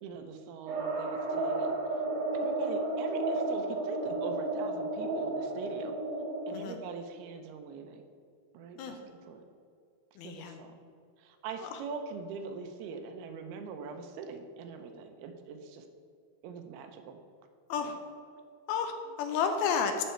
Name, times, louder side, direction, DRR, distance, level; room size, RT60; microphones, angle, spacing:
voice 1, 0.0-1.8 2.4-6.0 6.5-8.0 8.5-9.4 10.2-10.7 11.2-15.9 16.4-17.2 17.8-17.9, right 5 dB, 80° right, 6 dB, 2.6 m, -42 dB
sound 1, 0.7-6.6, right 2 dB, 60° right, 2.6 m, -32 dB
voice 2, 10.2-10.6 11.6-11.8 17.7-18.0 18.7-20.0, left 6 dB, 80° left, 6 dB, 2.5 m, -31 dB
13.5 x 5.6 x 4.4 m, 2.4 s
omnidirectional pair, 4.6 m